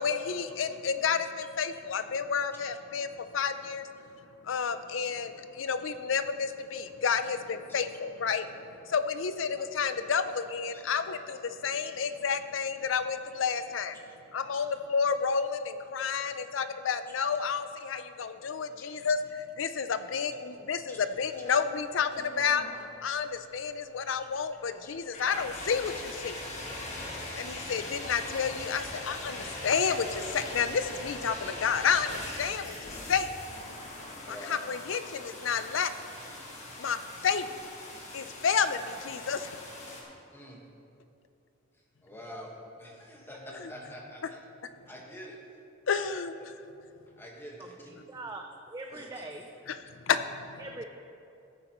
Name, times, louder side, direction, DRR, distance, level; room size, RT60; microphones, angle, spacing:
voice 1, 0.0-3.9 4.4-14.0 14.3-22.7 23.0-26.4 27.3-33.3 34.3-35.9 36.8-37.5 38.1-39.5 45.9-46.3 49.7-50.6, left 6 dB, 80° left, 11 dB, 0.5 m, -30 dB
sound 1, 21.0-40.0, left 1 dB, 35° left, 1.7 m, -42 dB
voice 2, 34.3-34.6 40.3-40.6 41.7-44.4 44.9-45.4 45.9-46.1 46.4-46.6 47.2-48.2 48.9-49.2, equal, 10° left, -2 dB, 1.5 m, -46 dB
voice 3, 48.1-49.5 50.6-50.8, right 2 dB, 20° right, 3 dB, 0.4 m, -41 dB
14.5 x 9.0 x 3.1 m, 2.7 s
head